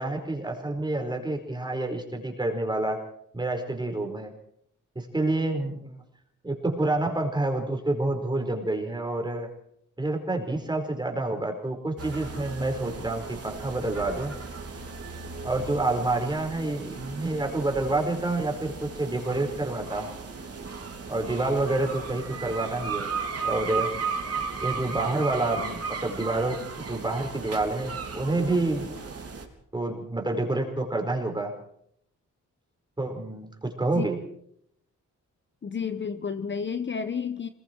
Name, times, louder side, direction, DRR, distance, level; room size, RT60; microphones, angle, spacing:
voice 1, 0.0-3.0 3.3-4.3 4.9-6.0 6.4-9.5 10.0-14.4 15.4-20.2 21.1-23.1 23.4-23.9 24.6-28.9 29.7-31.5 33.0-34.2, right 2 dB, 15° right, 3 dB, 4.9 m, -28 dB
sound 1, 12.0-29.5, right 5 dB, 50° right, 4.0 m, -36 dB
voice 2, 35.6-37.5, left 6 dB, 35° left, 9 dB, 1.1 m, -31 dB
27.0 x 21.0 x 4.7 m, 0.71 s
wide cardioid pair, 165°, 32 cm